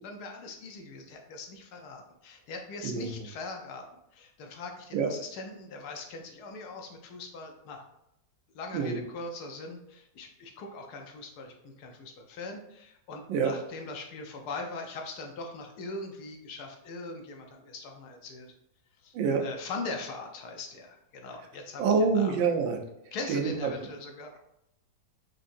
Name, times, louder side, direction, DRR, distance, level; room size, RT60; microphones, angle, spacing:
voice 1, 0.0-3.8 4.1-7.8 8.5-18.5 19.0-19.1 19.4-22.3 23.1-24.4, left 3 dB, 70° left, 3 dB, 1.0 m, -41 dB
voice 2, 21.8-22.8 23.3-23.7, right 5 dB, 85° right, 2 dB, 1.4 m, -26 dB
4.6 x 2.6 x 2.5 m, 0.81 s
omnidirectional pair, 2.0 m